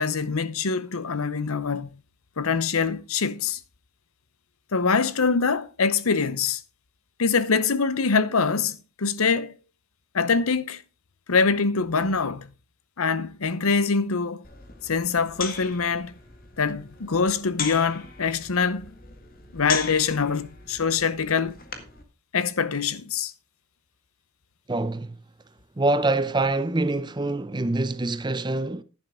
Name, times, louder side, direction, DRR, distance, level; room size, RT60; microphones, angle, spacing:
voice 1, 0.0-1.9 2.4-3.6 4.7-6.6 7.2-9.5 10.1-10.8 11.3-12.5 13.0-14.4 14.8-16.1 16.6-18.8 19.5-21.5 22.3-23.3, left 5 dB, 90° left, 0.9 m, -24 dB
sound 1, 14.4-22.0, left 6 dB, 40° left, 1.9 m, -38 dB
voice 2, 24.7-25.2 25.8-28.8, right 2 dB, 20° right, 0.6 m, -25 dB
11.0 x 10.5 x 3.7 m
head